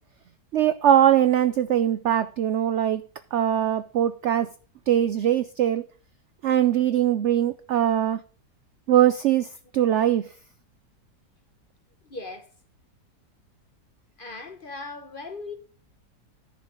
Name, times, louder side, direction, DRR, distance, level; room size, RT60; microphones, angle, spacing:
voice 1, 0.5-3.0 3.3-4.5 4.9-5.8 6.4-8.2 8.9-10.3, right 10 dB, 80° right, 0.6 m, -21 dB
voice 2, 12.0-12.5 14.2-15.6, left 3 dB, 40° left, 0.8 m, -38 dB
10.5 x 5.6 x 5.2 m
omnidirectional pair, 1.8 m